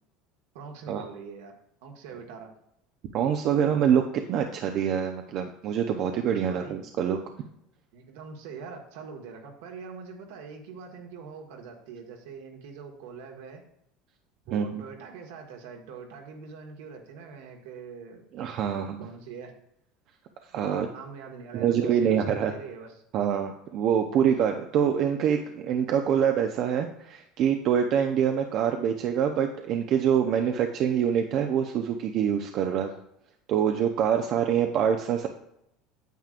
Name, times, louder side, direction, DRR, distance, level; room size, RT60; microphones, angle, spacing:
voice 1, 0.5-1.5 1.8-2.5 6.5-6.9 7.9-13.6 14.5-18.3 18.7-19.5 20.6-22.9, right 5 dB, 80° right, 2 dB, 1.7 m, -43 dB
voice 2, 3.1-4.0 4.3-7.2 14.5-14.8 18.3-19.0 20.5-20.9 21.5-22.5 23.1-32.9 33.5-35.3, right 8 dB, 55° right, 4 dB, 0.7 m, -25 dB
9.2 x 7.4 x 2.5 m, 0.78 s
supercardioid pair, 105°, 0 cm